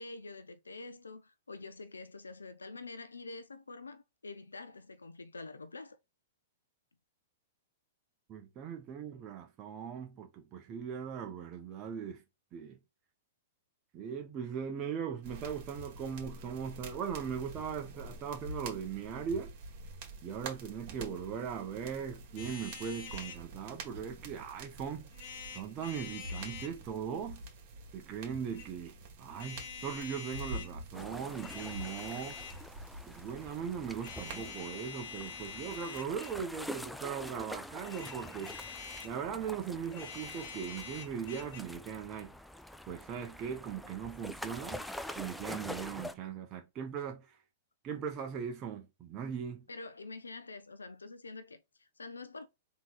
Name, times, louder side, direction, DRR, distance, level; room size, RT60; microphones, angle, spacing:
voice 1, 0.0-6.0 49.7-52.5, left 3 dB, 90° left, 0.6 m, -46 dB
voice 2, 8.3-12.2 12.5-12.8 13.9-19.5 20.2-25.1 25.5-27.4 27.9-32.4 33.1-38.6 39.0-42.3 42.9-44.8 45.2-47.4 47.8-49.7, right 7 dB, 30° right, 0.9 m, -39 dB
sound 1, 15.2-34.5, right 2 dB, 50° right, 1.9 m, -47 dB
sound 2, 22.4-23.4 25.1-26.8 28.3-28.7 29.3-30.7 31.3-32.7 34.0-36.4 37.8-39.2 39.8-41.6, left 6 dB, 60° left, 1.4 m, -46 dB
sound 3, 30.9-46.1, left 1 dB, ahead, 0.4 m, -46 dB
3.9 x 3.1 x 3.9 m
hypercardioid pair, 110°, 0 cm